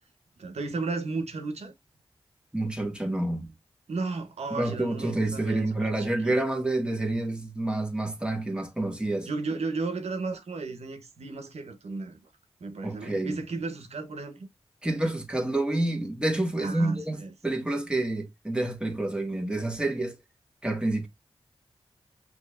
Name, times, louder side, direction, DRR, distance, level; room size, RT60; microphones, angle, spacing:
voice 1, 0.4-1.7 3.9-6.3 9.2-12.2 12.6-14.5 16.6-17.3, right 3 dB, 85° right, 1.0 m, -34 dB
voice 2, 2.5-3.5 4.5-9.3 12.8-13.4 14.8-20.2 20.6-21.1, right 2 dB, 10° right, 1.7 m, -28 dB
6.2 x 3.0 x 2.4 m
cardioid pair, 50°, 11 cm